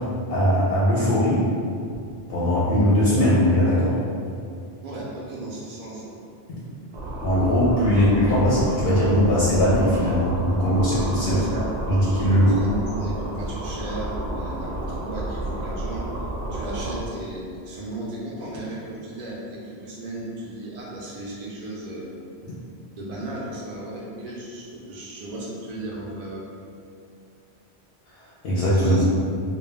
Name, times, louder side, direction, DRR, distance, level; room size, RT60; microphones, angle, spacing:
voice 1, 0.3-1.4 2.3-4.0 7.2-11.4 11.9-12.6 28.4-29.0, equal, 70° left, -8 dB, 0.7 m, -20 dB
voice 2, 4.8-6.2 11.2-11.7 12.5-16.1 16.5-22.1 22.9-26.5 28.7-29.1, right 2 dB, 55° right, -5 dB, 0.4 m, -35 dB
sound 1, 6.9-17.0, right 1 dB, 80° right, 0.9 m, -31 dB
2.2 x 2.2 x 3.2 m, 2.3 s
omnidirectional pair, 1.1 m